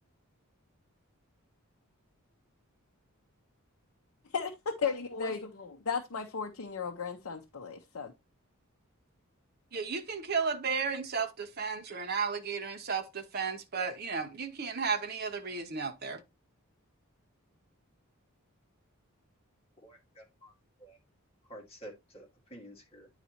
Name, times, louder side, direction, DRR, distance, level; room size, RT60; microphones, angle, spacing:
voice 1, 4.3-8.1, left 5 dB, 70° left, 0.7 m, -35 dB
voice 2, 9.7-16.2, right 5 dB, 45° right, 0.7 m, -34 dB
voice 3, 19.8-20.5 20.8-21.0 21.5-23.1, right 1 dB, 25° left, 1.8 m, -50 dB
9.7 x 4.0 x 2.8 m
head